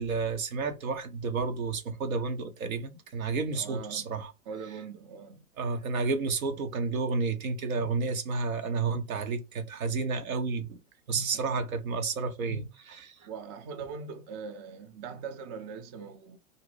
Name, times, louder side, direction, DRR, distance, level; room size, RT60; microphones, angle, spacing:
voice 1, 0.0-4.3 5.6-10.8 11.1-13.3, right 4 dB, 75° right, 0.7 m, -31 dB
voice 2, 3.5-4.1 4.5-5.5 13.2-16.4, right 5 dB, 35° right, 0.5 m, -41 dB
2.6 x 2.1 x 3.1 m
hypercardioid pair, 100°, 42 cm